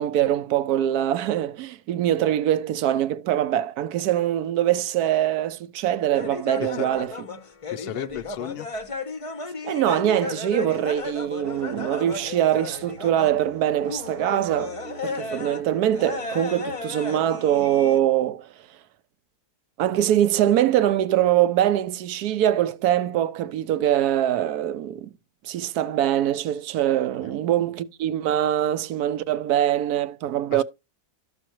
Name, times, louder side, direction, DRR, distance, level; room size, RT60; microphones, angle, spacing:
voice 1, 0.0-7.1 9.6-14.7 15.0-18.5 19.8-25.1 25.4-30.6, right 11 dB, 75° right, 1.1 m, -23 dB
sound 1, 6.1-13.5 13.8-15.6 15.9-18.0, left 4 dB, 30° left, 0.6 m, -34 dB
voice 2, 7.7-8.7 27.2-27.4 30.5-30.6, left 10 dB, 75° left, 0.5 m, -34 dB
sound 2, 11.4-16.8, right 6 dB, 60° right, 1.1 m, -44 dB
13.0 x 6.2 x 3.0 m
omnidirectional pair, 1.7 m